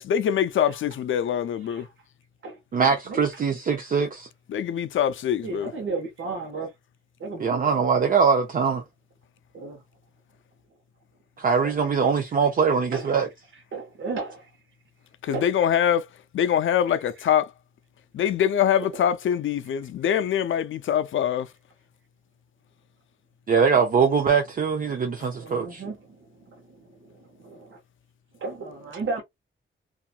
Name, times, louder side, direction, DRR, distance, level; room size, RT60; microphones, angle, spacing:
voice 1, 0.0-1.9 4.5-5.7 15.2-16.1 16.3-17.5 18.1-21.5, left 9 dB, 75° left, 0.4 m, -24 dB
voice 2, 2.7-4.3 7.4-8.8 11.4-13.3 23.5-25.8, right 6 dB, 45° right, 0.5 m, -22 dB
voice 3, 5.4-6.7 7.2-7.7 9.5-9.8 11.6-11.8 12.9-13.1 13.7-14.5 15.3-15.5 25.3-27.8 28.4-29.2, right 3 dB, 70° right, 0.9 m, -34 dB
2.8 x 2.3 x 2.3 m
wide cardioid pair, 160°, 20 cm